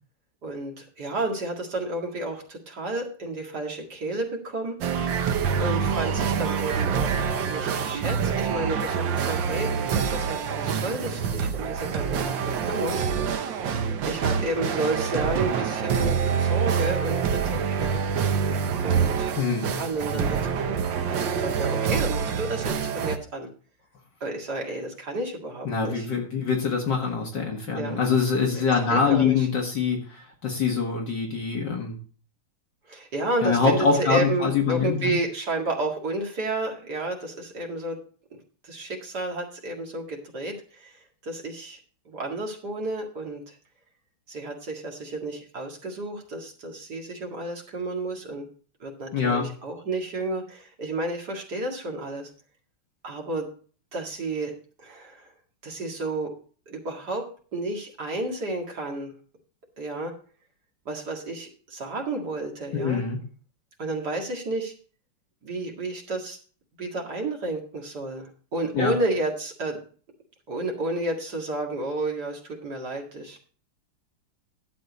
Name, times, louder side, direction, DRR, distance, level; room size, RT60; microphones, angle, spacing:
voice 1, 0.4-4.8 5.6-13.1 14.1-18.0 18.8-19.4 19.7-20.8 21.3-23.5 24.2-26.1 27.7-28.0 28.9-29.5 32.9-38.0 38.6-41.8 42.1-43.6 44.3-48.5 48.8-52.3 53.0-53.5 53.9-54.5 54.8-55.3 55.6-56.3 56.7-57.2 57.5-59.1 59.8-60.1 60.9-63.0 63.8-64.7 65.4-66.4 66.8-69.8 70.5-73.4, right 2 dB, 50° right, 1 dB, 2.5 m, -31 dB
sound 1, 4.8-23.2, right 6 dB, 65° right, 1.5 m, -26 dB
voice 2, 19.4-19.8 25.7-32.0 33.4-35.1 49.1-49.5 62.7-63.2 68.7-68.9, left 5 dB, 55° left, 1 dB, 2.2 m, -24 dB
11.5 x 7.5 x 4.0 m, 0.41 s
omnidirectional pair, 2.4 m